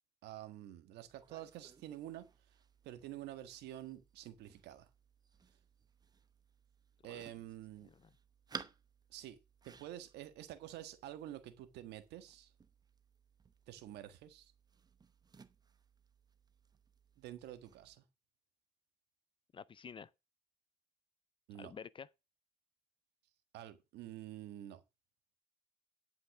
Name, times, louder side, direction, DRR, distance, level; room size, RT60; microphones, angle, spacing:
voice 1, 0.2-2.2 2.8-4.9 7.0-7.9 9.1-9.4 9.6-12.5 13.7-14.5 17.2-18.0 21.5-21.7 23.5-24.8, right 13 dB, 80° right, 1.6 m, -48 dB
sound 1, 1.1-18.0, right 5 dB, 25° right, 0.9 m, -57 dB
voice 2, 19.5-20.1 21.5-22.1, left 6 dB, 30° left, 0.5 m, -50 dB
10.5 x 5.8 x 6.0 m
cardioid pair, 110°, 17 cm